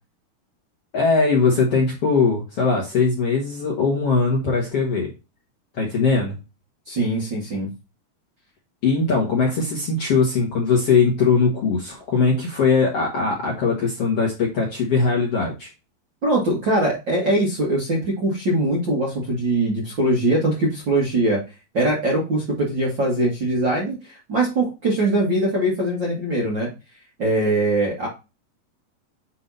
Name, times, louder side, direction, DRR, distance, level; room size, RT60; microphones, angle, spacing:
voice 1, 0.9-5.1 5.8-6.4 8.8-15.7, left 4 dB, 50° left, -3 dB, 1.9 m, -20 dB
voice 2, 6.9-7.7 16.2-21.4 21.7-26.7 27.2-28.1, right 1 dB, 40° right, -4 dB, 1.8 m, -22 dB
7.6 x 3.8 x 4.1 m, 0.27 s
omnidirectional pair, 4.6 m